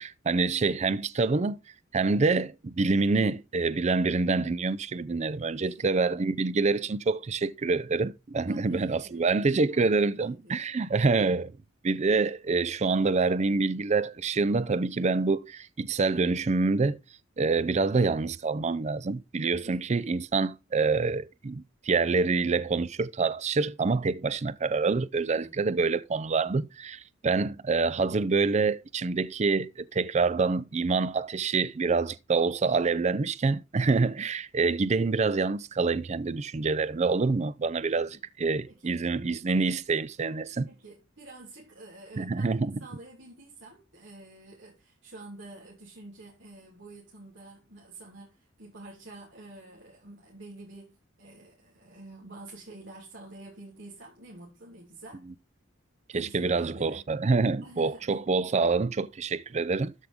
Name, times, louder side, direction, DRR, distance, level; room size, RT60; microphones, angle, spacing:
voice 1, 0.0-1.6 1.9-11.5 11.8-17.0 17.4-40.7 42.2-42.8 56.1-59.9, right 4 dB, 35° right, 0.5 m, -26 dB
voice 2, 5.6-6.5 8.5-10.6 19.6-19.8 25.3-25.5 38.0-38.1 38.7-39.0 40.6-55.3 56.1-57.0 57.6-58.1, right 2 dB, 70° right, 3.1 m, -48 dB
13.0 x 5.3 x 3.6 m
head